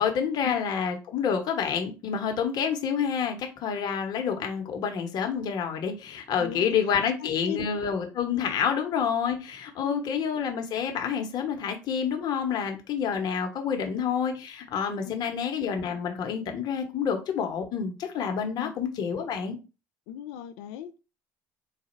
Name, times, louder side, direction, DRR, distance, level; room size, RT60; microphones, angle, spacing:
voice 1, 0.0-19.6, left 7 dB, 55° left, 1.0 m, -28 dB
voice 2, 6.4-6.8 7.2-7.8 9.8-10.1 15.0-15.4 18.5-18.7 20.1-21.0, left 9 dB, 75° left, 0.5 m, -38 dB
4.0 x 2.3 x 4.4 m
hypercardioid pair, 65°, 8 cm